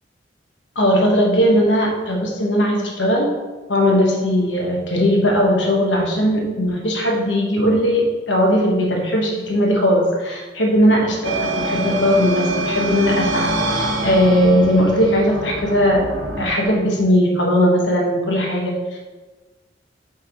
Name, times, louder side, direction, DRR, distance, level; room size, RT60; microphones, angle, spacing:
voice 1, 0.7-3.3 3.7-16.1 16.4-19.0, equal, 70° left, -1 dB, 1.3 m, -18 dB
sound 1, 11.2-16.5, right 1 dB, 80° right, 0.9 m, -25 dB
5.5 x 3.6 x 4.8 m, 1.2 s
head